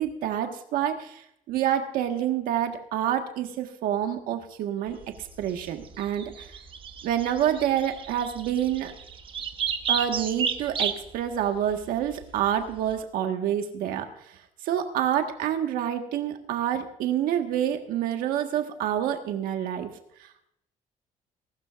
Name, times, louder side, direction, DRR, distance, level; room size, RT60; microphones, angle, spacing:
voice 1, 0.0-6.5 7.0-8.9 9.9-14.1 14.6-19.9, right 10 dB, 90° right, 5 dB, 1.6 m, -27 dB
sound 1, 4.9-13.0, right 7 dB, 35° right, 1.0 m, -34 dB
19.5 x 12.5 x 2.5 m, 0.73 s
cardioid pair, 145°, 14 cm